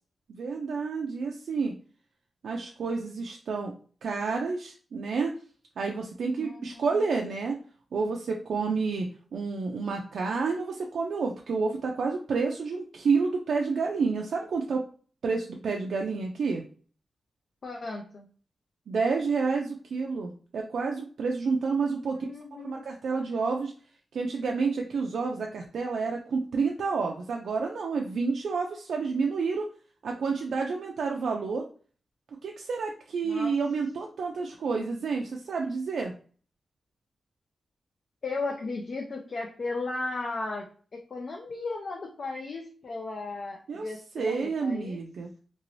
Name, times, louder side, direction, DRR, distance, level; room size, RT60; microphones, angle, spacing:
voice 1, 0.3-1.7 2.4-3.7 4.0-5.4 5.8-7.6 7.9-14.8 15.2-16.6 18.9-22.3 22.6-23.7 24.1-29.7 30.0-31.7 32.4-36.1 43.7-43.9 44.1-45.3, right 4 dB, 85° right, 1 dB, 0.4 m, -29 dB
voice 2, 6.4-7.1 17.6-18.3 22.1-22.8 33.2-33.5 38.2-40.7 40.9-45.0, left 3 dB, 50° left, 0 dB, 0.5 m, -35 dB
2.9 x 2.6 x 3.0 m, 0.41 s
wide cardioid pair, 145°, 0 cm